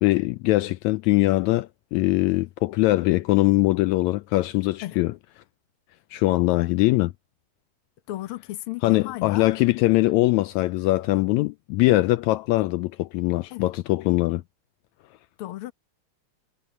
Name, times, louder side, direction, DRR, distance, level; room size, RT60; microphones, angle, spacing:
voice 1, 0.0-5.1 6.1-7.1 8.8-14.4, left 19 dB, 80° left, 1.8 m, -22 dB
voice 2, 8.1-9.5 11.8-11.9 13.5-13.7 15.4-15.7, left 16 dB, 60° left, 1.6 m, -35 dB
omnidirectional pair, 3.4 m